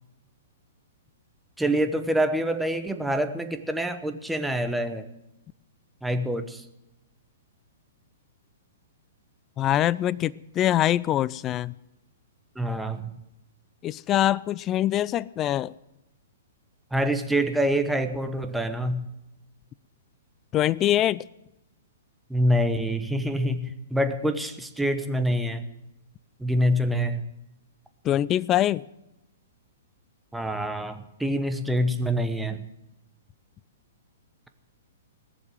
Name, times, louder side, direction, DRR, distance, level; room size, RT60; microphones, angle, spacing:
voice 1, 1.6-5.1 6.0-6.6 12.6-13.2 16.9-19.1 22.3-25.7 26.4-27.2 30.3-32.7, equal, 5° right, 8 dB, 1.0 m, -26 dB
voice 2, 9.6-11.7 13.8-15.7 20.5-21.2 28.0-28.8, left 12 dB, 25° left, 21 dB, 0.4 m, -24 dB
19.5 x 7.2 x 7.5 m, 0.92 s
hypercardioid pair, 115°, 0 cm